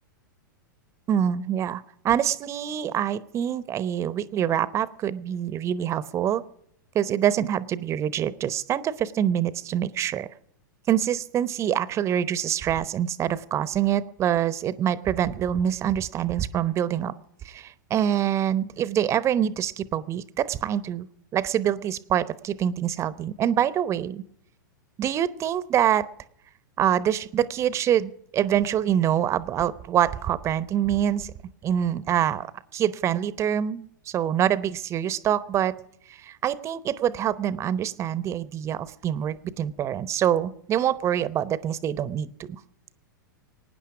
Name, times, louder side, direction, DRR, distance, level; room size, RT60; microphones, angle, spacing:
voice 1, 1.1-6.4 6.9-10.3 10.9-17.2 17.4-21.1 21.3-24.2 25.0-26.1 26.8-31.3 31.6-32.5 32.7-35.8 36.1-42.6, right 10 dB, 25° right, 17 dB, 0.8 m, -25 dB
22.5 x 9.8 x 4.8 m, 0.67 s
figure-of-eight pair, 100°, 11 cm